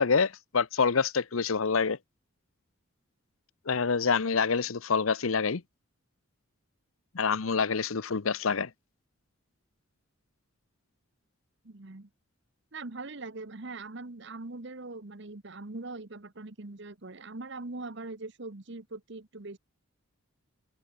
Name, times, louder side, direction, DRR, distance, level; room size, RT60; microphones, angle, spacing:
voice 1, 0.0-2.0 3.7-5.6 7.1-8.7, left 5 dB, 75° left, 0.8 m, -26 dB
voice 2, 11.6-12.1 12.7-19.6, right 3 dB, 55° right, 1.2 m, -41 dB
open air
head